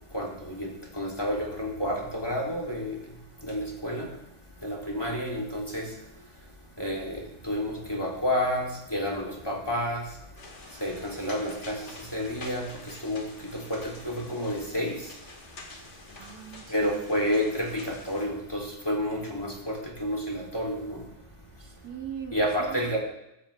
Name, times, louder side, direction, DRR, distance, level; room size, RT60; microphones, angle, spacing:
voice 1, 0.1-3.0 3.4-4.1 4.6-5.9 6.8-10.0 10.8-13.3 13.5-15.0 16.7-21.0 22.3-23.0, equal, 15° left, -1 dB, 3.0 m, -30 dB
sound 1, 10.4-18.3, left 2 dB, 45° left, 2.1 m, -47 dB
voice 2, 16.2-17.5 21.6-22.3 22.6-22.9, right 8 dB, 70° right, 4 dB, 1.6 m, -41 dB
15.0 x 13.5 x 3.4 m, 0.85 s
omnidirectional pair, 1.7 m